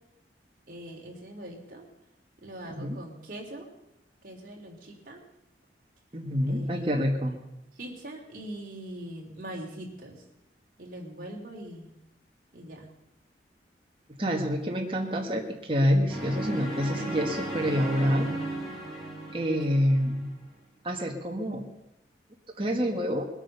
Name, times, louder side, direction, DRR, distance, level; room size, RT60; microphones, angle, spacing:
voice 1, 0.7-1.8 2.4-3.7 4.2-5.2 6.5-7.0 7.8-10.2 10.8-11.9 12.5-12.9 19.7-19.8, right 1 dB, 50° right, 0 dB, 3.3 m, -42 dB
voice 2, 6.1-7.3 14.2-18.3 19.3-20.3 20.8-21.6 22.6-23.3, equal, 30° right, 0 dB, 1.6 m, -27 dB
sound 1, 16.1-20.3, right 1 dB, ahead, 4.0 m, -35 dB
21.0 x 8.9 x 6.8 m, 0.89 s
head